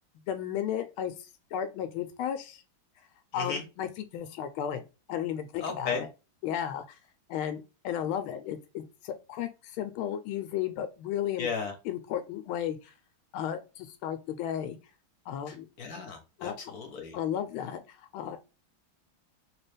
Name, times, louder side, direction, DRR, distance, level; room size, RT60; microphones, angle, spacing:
voice 1, 0.3-1.1 1.5-2.6 3.3-6.1 6.4-6.8 7.3-9.5 9.8-11.5 11.8-12.9 13.3-14.8 15.3-15.7 16.4-16.6 17.1-17.8 18.1-18.4, left 10 dB, 90° left, 1.4 m, -34 dB
voice 2, 3.3-3.6 5.6-6.0 11.4-11.7 15.5-17.2, left 5 dB, 60° left, 1.1 m, -35 dB
3.2 x 3.0 x 3.2 m
omnidirectional pair, 2.2 m